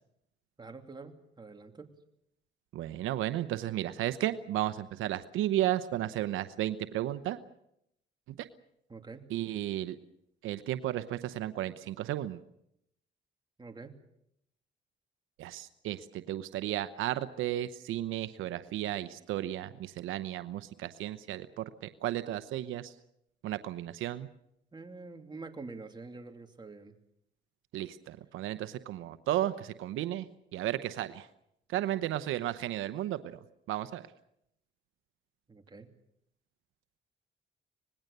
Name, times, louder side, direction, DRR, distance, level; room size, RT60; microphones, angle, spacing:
voice 1, 0.6-1.9 8.9-9.3 13.6-14.0 24.7-26.9 35.5-35.9, right 3 dB, 20° right, 5 dB, 2.8 m, -46 dB
voice 2, 2.7-7.4 9.3-10.0 10.4-12.4 15.4-21.6 22.0-22.9 23.4-24.3 27.7-30.3 30.5-31.3 31.7-33.4 33.7-34.0, right 13 dB, 90° right, 12 dB, 0.9 m, -33 dB
25.5 x 20.0 x 6.8 m, 0.78 s
cardioid pair, 90°, 20 cm